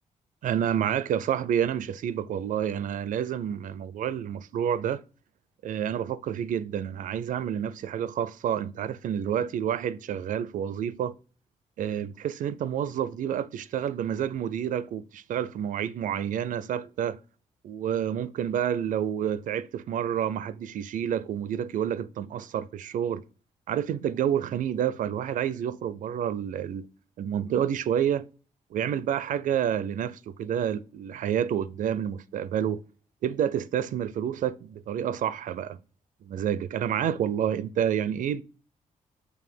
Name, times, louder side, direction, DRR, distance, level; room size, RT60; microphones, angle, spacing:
voice 1, 0.4-5.0 5.6-11.1 11.8-17.2 17.6-23.2 23.7-26.9 27.2-28.3 28.7-32.8 33.2-35.8 36.2-38.4, right 9 dB, 75° right, 0.5 m, -29 dB
7.0 x 3.3 x 6.0 m
wide cardioid pair, 135°, 13 cm